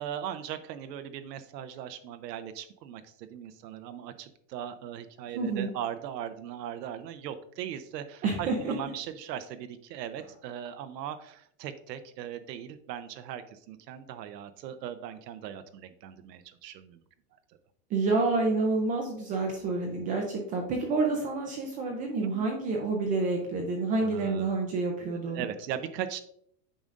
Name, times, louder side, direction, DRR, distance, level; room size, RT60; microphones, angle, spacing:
voice 1, 0.0-17.0 22.2-22.5 23.9-26.2, right 10 dB, 90° right, 9 dB, 0.8 m, -39 dB
voice 2, 5.3-5.7 8.2-8.7 17.9-25.5, right 3 dB, 20° right, 1 dB, 0.3 m, -28 dB
8.9 x 5.2 x 2.4 m, 0.67 s
supercardioid pair, 145°, 48 cm